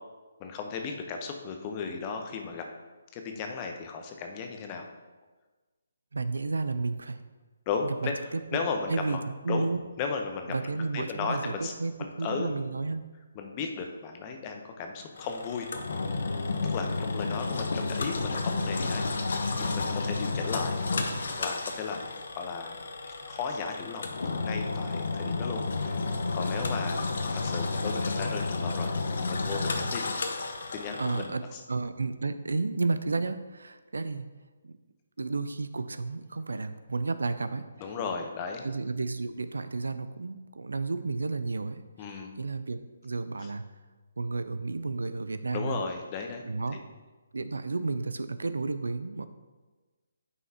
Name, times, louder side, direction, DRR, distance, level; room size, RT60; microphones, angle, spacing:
voice 1, 0.4-2.7 3.1-4.8 7.7-8.1 8.5-9.2 9.5-9.7 10.0-10.5 10.9-11.7 12.0-12.5 13.3-15.7 16.7-20.8 21.4-22.0 22.3-22.8 23.0-26.0 26.3-28.9 29.3-30.1 30.4-31.6 37.8-38.7 42.0-42.3 43.4-43.5 45.5-46.4 46.7-46.8, left 5 dB, 30° left, 3 dB, 0.9 m, -35 dB
voice 2, 6.1-7.2 7.8-9.2 9.4-9.8 10.5-11.5 11.8-13.0 31.0-31.4 31.7-34.3 34.6-34.7 35.2-37.7 38.6-41.8 42.1-43.6 44.2-45.8 46.4-46.8 47.3-49.3, right 3 dB, 80° right, 12 dB, 0.5 m, -32 dB
Engine, 15.2-31.3, left 3 dB, 65° left, 0.9 m, -31 dB
9.5 x 5.5 x 2.9 m, 1.3 s
figure-of-eight pair, 145°, 0 cm